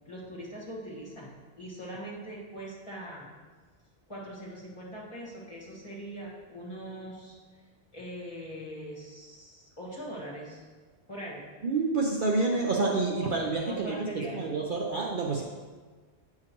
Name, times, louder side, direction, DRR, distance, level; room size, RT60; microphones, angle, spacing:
voice 1, 0.0-3.3 4.1-7.4 7.9-10.6 11.1-11.4 13.2-13.3 13.6-14.5, right 1 dB, 25° left, -5 dB, 1.6 m, -41 dB
voice 2, 11.6-15.4, right 3 dB, 55° right, -1 dB, 0.8 m, -28 dB
8.7 x 5.7 x 3.0 m, 1.4 s
omnidirectional pair, 1.1 m